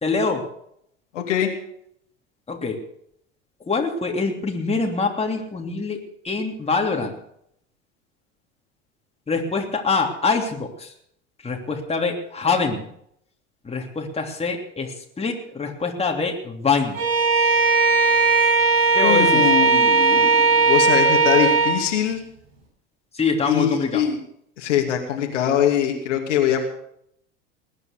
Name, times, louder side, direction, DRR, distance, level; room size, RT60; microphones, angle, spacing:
voice 1, 0.0-0.4 2.5-2.8 3.7-6.0 6.2-7.1 9.3-10.9 11.4-12.8 13.6-17.0 18.9-19.4 23.1-24.1, left 4 dB, 15° left, 1 dB, 3.1 m, -24 dB
voice 2, 1.1-1.5 19.0-22.2 23.4-24.2 24.6-26.7, left 9 dB, 75° left, 2 dB, 2.8 m, -22 dB
Bowed string instrument, 16.9-21.8, right 4 dB, 60° right, 7.7 m, -17 dB
20.5 x 9.6 x 6.7 m, 0.71 s
hypercardioid pair, 80°, 37 cm